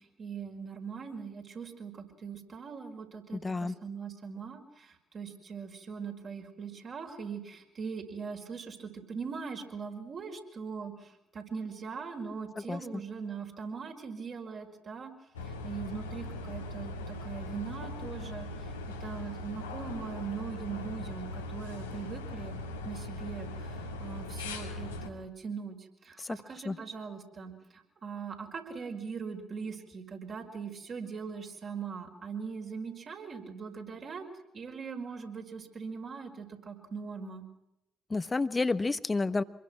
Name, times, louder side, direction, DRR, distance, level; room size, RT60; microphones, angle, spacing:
voice 1, 0.0-15.1 15.4-18.7 19.0-22.6 22.8-34.3 34.5-37.4, right 5 dB, 45° right, 2 dB, 5.2 m, -41 dB
voice 2, 3.3-3.7 12.7-13.0 26.2-26.4 26.6-26.8 38.1-39.4, left 3 dB, 25° left, 14 dB, 1.3 m, -30 dB
sound 1, 15.3-25.1, left 2 dB, 85° left, 2.1 m, -40 dB
26.5 x 22.0 x 6.1 m, 0.85 s
figure-of-eight pair, 45°, 0 cm